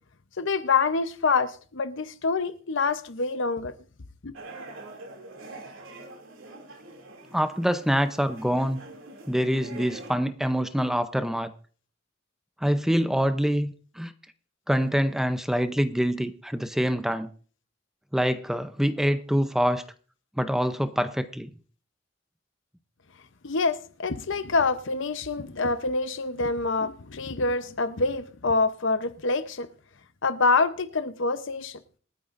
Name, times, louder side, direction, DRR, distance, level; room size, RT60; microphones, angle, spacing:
voice 1, 0.4-3.7 4.2-4.3 23.4-29.7 30.2-31.8, left 4 dB, 70° left, 0.8 m, -26 dB
sound 1, 4.3-10.1, right 2 dB, 85° right, 2.7 m, -44 dB
voice 2, 7.3-8.8 9.3-11.5 12.6-14.1 14.7-17.3 18.1-19.8 20.4-21.5, equal, ahead, 0.6 m, -25 dB
27.0 x 9.3 x 2.6 m
head